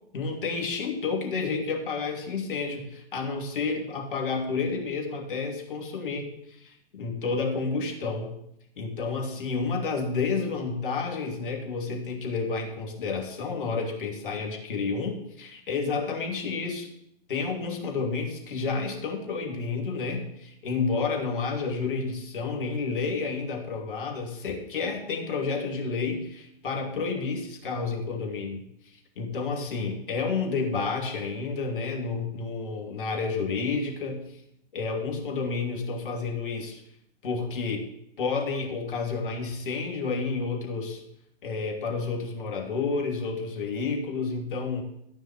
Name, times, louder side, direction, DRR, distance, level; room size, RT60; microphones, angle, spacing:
voice 1, 0.1-6.3 6.6-8.3 8.8-16.9 17.3-28.6 29.2-34.2 34.7-36.8 37.2-37.9 38.2-41.0 41.4-44.8, left 4 dB, 60° left, 1 dB, 2.9 m, -30 dB
14.5 x 5.4 x 7.4 m, 0.76 s
figure-of-eight pair, 115°, 30 cm